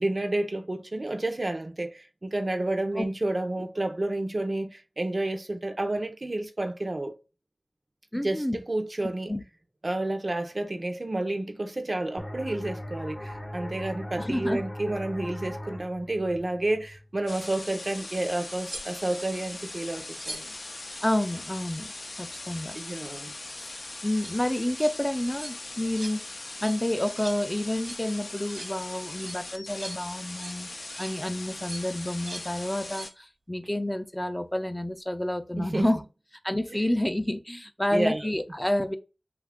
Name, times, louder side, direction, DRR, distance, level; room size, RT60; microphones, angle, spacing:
voice 1, 0.0-7.2 8.1-9.3 9.8-20.5 22.7-23.3 35.6-35.9 36.7-36.8 37.9-38.3, right 2 dB, 55° right, 0.5 m, -30 dB
voice 2, 8.1-8.6 9.3-9.4 14.2-14.6 21.0-21.9 22.2-22.8 24.0-30.7 31.0-36.0 36.4-38.9, left 1 dB, 15° left, 0.4 m, -29 dB
sound 1, 12.2-17.6, left 1 dB, 45° left, 0.7 m, -39 dB
sound 2, 17.3-33.1, left 2 dB, 85° left, 0.4 m, -40 dB
sound 3, 18.0-18.1 18.6-19.2 20.0-20.6 23.9-24.3 24.7-24.9 25.2-25.6 25.8-26.2 26.4-26.8 27.1-27.4 27.7-28.1 28.4-28.7 29.1-30.6 30.9-31.2 31.5-32.5 32.8-33.1 35.7-35.9, right 2 dB, 85° right, 1.1 m, -43 dB
2.8 x 2.4 x 3.4 m
wide cardioid pair, 45°, 0 cm